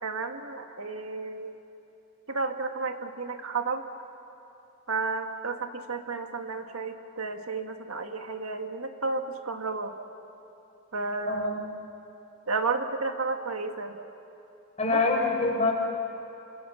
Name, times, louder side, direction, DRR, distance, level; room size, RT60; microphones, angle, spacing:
voice 1, 0.0-1.6 2.3-3.8 4.9-10.0 10.9-11.5 12.5-14.0 14.8-15.0, right 4 dB, 85° right, 6 dB, 1.7 m, -32 dB
voice 2, 11.3-11.6 14.8-15.7, left 3 dB, 30° left, 0 dB, 4.7 m, -25 dB
29.0 x 26.0 x 7.0 m, 2.9 s
head